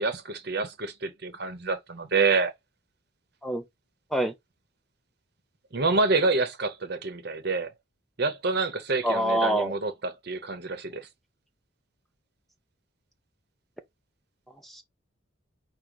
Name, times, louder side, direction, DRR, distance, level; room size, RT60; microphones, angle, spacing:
voice 1, 0.0-2.5 5.7-7.7 8.2-11.1, right 3 dB, 50° right, 0.9 m, -27 dB
voice 2, 9.0-9.7 14.6-14.8, right 1 dB, ahead, 0.4 m, -25 dB
5.1 x 2.2 x 4.5 m
head